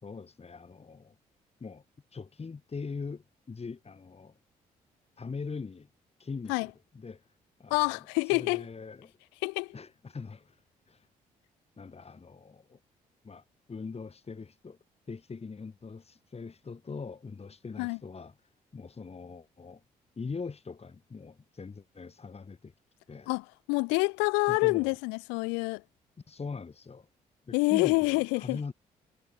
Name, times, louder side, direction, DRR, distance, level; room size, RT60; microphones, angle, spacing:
voice 1, 0.0-1.1 1.6-1.8 2.1-4.4 5.2-5.9 6.2-7.2 7.6-7.9 8.3-9.1 9.7-10.6 10.9-11.1 11.8-12.8 13.2-14.8 15.1-18.3 18.7-19.8 20.2-22.7 23.1-23.3 24.5-25.0 26.3-27.1 27.4-28.7, left 4 dB, 35° left, 2.4 m, -41 dB
voice 2, 7.7-8.7 9.4-9.7 17.8-18.0 23.3-25.8 27.5-28.6, left 33 dB, 85° left, 0.6 m, -27 dB
hypercardioid pair, 50°, 18 cm